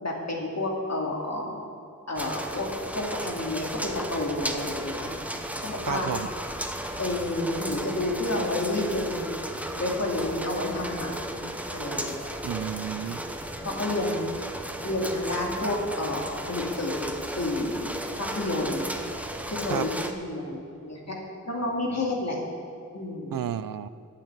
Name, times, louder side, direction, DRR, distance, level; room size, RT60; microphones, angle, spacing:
voice 1, 0.0-1.6 2.1-2.7 2.9-5.1 5.6-6.1 7.0-9.3 9.8-12.3 13.6-14.3 14.8-17.9 18.2-18.9 19.5-21.2 21.5-22.4 22.9-23.4, left 2 dB, 50° left, -1 dB, 2.5 m, -30 dB
sound 1, 2.2-20.1, right 1 dB, 5° right, 0.9 m, -35 dB
voice 2, 5.9-6.3 12.4-13.2 19.7-19.9 23.3-23.9, right 10 dB, 75° right, 15 dB, 0.5 m, -31 dB
8.9 x 8.5 x 8.0 m, 2.6 s
wide cardioid pair, 60°, 34 cm